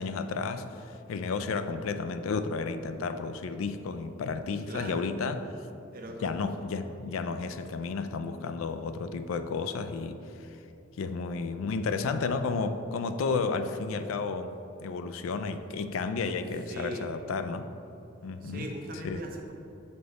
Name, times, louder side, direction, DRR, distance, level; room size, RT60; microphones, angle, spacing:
voice 1, 0.0-5.4 6.2-10.5 11.0-14.5 14.8-17.7 18.2-18.7 19.0-19.2, left 4 dB, 80° left, 9 dB, 0.4 m, -32 dB
voice 2, 4.7-5.2 5.9-6.5 16.7-17.1 18.4-19.5, right 1 dB, 45° right, 2 dB, 0.7 m, -40 dB
6.7 x 4.0 x 4.0 m, 2.9 s
head